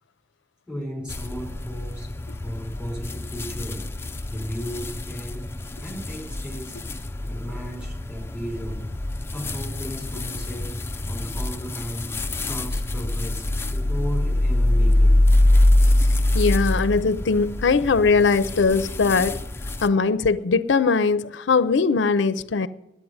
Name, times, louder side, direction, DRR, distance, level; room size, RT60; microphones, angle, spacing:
voice 1, 0.7-2.1 2.4-3.9 4.3-5.5 5.8-6.8 7.2-8.9 9.3-10.7 11.1-15.2, equal, 5° right, 4.7 m, -35 dB
sound 1, 1.1-19.9, left 1 dB, 15° left, 0.5 m, -24 dB
voice 2, 16.3-19.4 19.8-22.7, left 4 dB, 90° left, 0.5 m, -20 dB
11.0 x 8.4 x 9.3 m
head